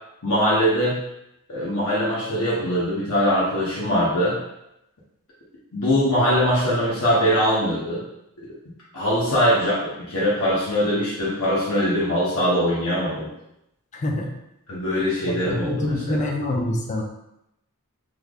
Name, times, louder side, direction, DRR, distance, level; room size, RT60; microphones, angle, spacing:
voice 1, 0.2-1.0 1.5-4.4 5.7-8.0 8.9-13.3 14.7-16.3, equal, 75° left, -8 dB, 0.9 m, -22 dB
voice 2, 13.9-14.3 15.5-17.0, left 1 dB, 30° left, 2 dB, 0.4 m, -25 dB
3.2 x 2.0 x 3.6 m, 0.84 s
head